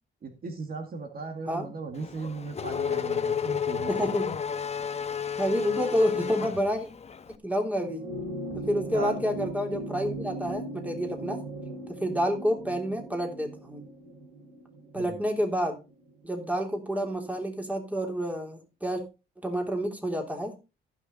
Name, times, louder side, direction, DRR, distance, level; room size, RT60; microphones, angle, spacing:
voice 1, 0.2-3.9 8.5-8.6 8.9-9.2 14.9-15.2, right 4 dB, 50° right, 5 dB, 2.1 m, -37 dB
Race car auto racing / Accelerating revving vroom, 2.0-7.2, left 7 dB, 35° left, 0.9 m, -31 dB
voice 2, 3.9-4.3 5.4-6.9 7.4-8.0 8.5-11.4 12.0-13.8 14.9-15.8 16.2-19.0 19.4-20.6, equal, 5° right, 3 dB, 3.4 m, -29 dB
sound 1, 7.7-16.4 17.6-17.7, right 1 dB, 70° right, 4.5 m, -39 dB
15.0 x 6.2 x 4.0 m, 0.29 s
cardioid pair, 90°, 20 cm